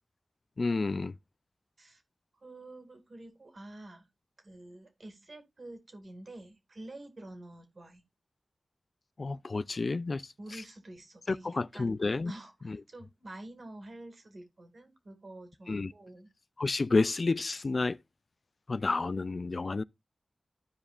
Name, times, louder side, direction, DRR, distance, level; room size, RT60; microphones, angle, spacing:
voice 1, 0.6-1.2 9.2-10.6 11.3-12.3 12.6-12.8 15.7-15.9 16.6-18.0 18.7-19.8, left 3 dB, 55° left, 0.4 m, -30 dB
voice 2, 2.4-4.1 4.4-8.0 10.4-12.0 12.3-16.3, right 1 dB, 60° right, 2.4 m, -48 dB
14.5 x 4.9 x 2.5 m
wide cardioid pair, 60°, 0 cm